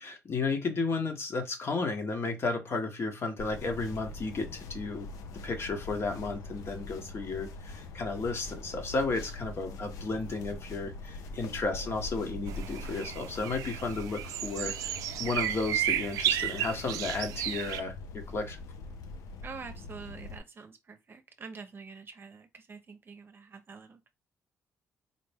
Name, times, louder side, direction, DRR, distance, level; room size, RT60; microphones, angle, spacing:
voice 1, 0.0-5.1 5.4-14.9 15.2-18.6, left 3 dB, 50° left, 1.0 m, -33 dB
sound 1, 3.4-20.4, left 2 dB, 80° left, 0.5 m, -43 dB
sound 2, 12.5-17.8, right 12 dB, 85° right, 0.3 m, -33 dB
voice 2, 19.4-24.1, right 5 dB, 40° right, 0.7 m, -46 dB
4.1 x 2.1 x 3.3 m
cardioid pair, 80°, 6 cm